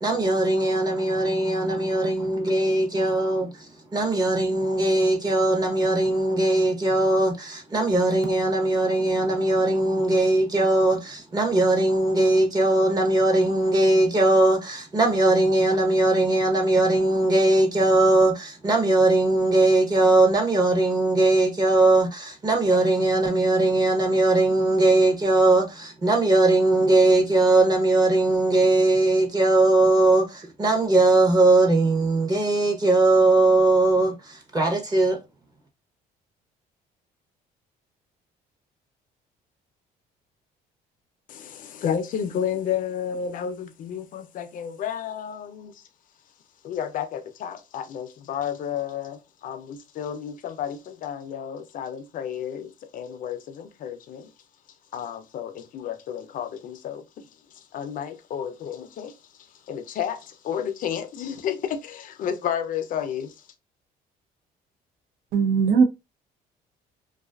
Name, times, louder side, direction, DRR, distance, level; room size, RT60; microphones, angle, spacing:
voice 1, 0.0-3.5 3.9-35.2, right 2 dB, 25° right, 0.7 m, -20 dB
voice 2, 41.3-45.8 46.6-54.3 54.9-57.3 57.5-63.3, left 8 dB, 55° left, 0.5 m, -32 dB
voice 3, 65.3-65.8, right 5 dB, 65° right, 0.5 m, -18 dB
2.5 x 2.3 x 2.2 m
cardioid pair, 110°, 17 cm